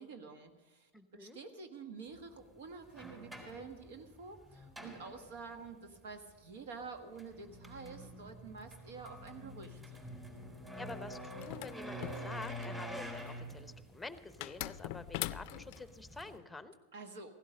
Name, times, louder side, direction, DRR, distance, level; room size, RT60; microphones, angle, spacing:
voice 1, 0.0-10.0 16.9-17.3, right 4 dB, 75° right, 7 dB, 1.5 m, -49 dB
voice 2, 0.9-1.4 10.8-16.7, left 3 dB, 5° left, 11 dB, 0.9 m, -48 dB
sound 1, 2.1-2.2 2.8-5.7 7.0-16.4, equal, 15° right, 4.1 m, -47 dB
sound 2, 11.4-12.8 14.4-15.8, left 17 dB, 55° left, 0.4 m, -41 dB
16.0 x 12.0 x 5.2 m, 1.2 s
hypercardioid pair, 115°, 0 cm